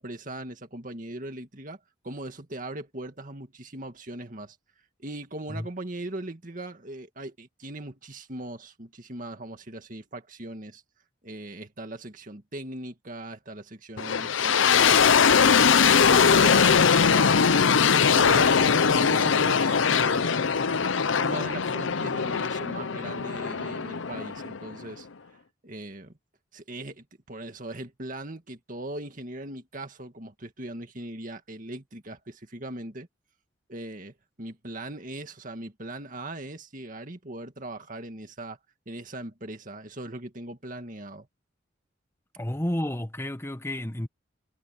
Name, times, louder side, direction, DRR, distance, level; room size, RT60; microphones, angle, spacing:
voice 1, 0.0-4.6 5.0-10.8 11.2-17.6 18.1-20.4 20.7-25.1 25.6-26.1 26.5-33.1 33.7-38.6 38.9-41.3, right 1 dB, 40° right, 2.1 m, -39 dB
sound 1, 14.0-24.9, left 6 dB, 75° left, 0.7 m, -21 dB
voice 2, 42.4-44.1, left 1 dB, 15° left, 1.2 m, -31 dB
head